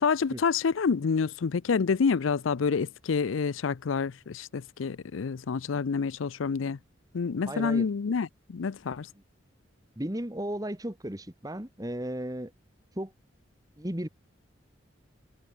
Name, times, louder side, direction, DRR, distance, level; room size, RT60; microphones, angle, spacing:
voice 1, 0.0-6.8 7.1-9.1, left 5 dB, 85° left, 0.5 m, -28 dB
voice 2, 7.5-7.9 9.1-9.2 10.0-12.5 13.0-13.1 13.8-14.1, right 1 dB, 20° right, 1.7 m, -35 dB
head